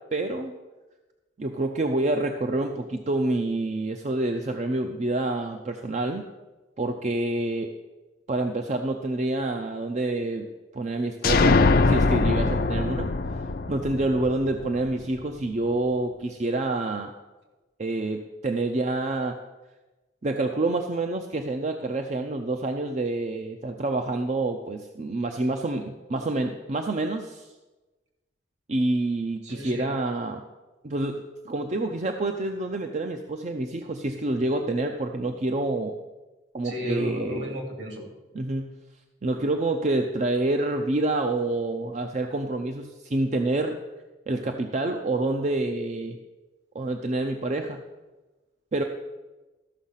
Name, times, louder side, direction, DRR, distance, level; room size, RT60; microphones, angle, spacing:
voice 1, 0.1-0.5 1.4-6.2 6.8-7.7 8.3-10.5 10.7-11.6 11.8-17.1 17.8-19.4 20.2-27.5 28.7-30.4 30.8-35.9 36.5-37.6 38.3-38.7 39.2-43.8 44.3-46.2 46.7-47.8 48.7-48.8, right 2 dB, 40° right, 4 dB, 0.5 m, -27 dB
sound 1, 11.2-14.9, left 3 dB, 55° left, 0.5 m, -22 dB
voice 2, 29.4-29.9 36.6-38.0, equal, 70° right, 1 dB, 2.9 m, -33 dB
13.5 x 6.3 x 5.7 m, 1.2 s
head